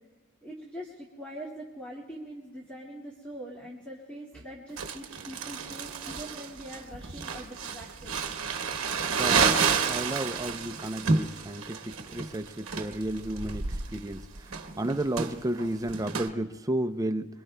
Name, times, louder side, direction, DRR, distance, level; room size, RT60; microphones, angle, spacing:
voice 1, 0.4-8.2, equal, 5° left, -4 dB, 2.0 m, -43 dB
Crumpling crinkling, 4.8-16.3, right 5 dB, 65° right, 1.1 m, -30 dB
voice 2, 9.2-14.2 14.8-17.3, right 1 dB, 15° right, 7 dB, 0.5 m, -32 dB
26.0 x 24.0 x 2.2 m, 1.3 s
head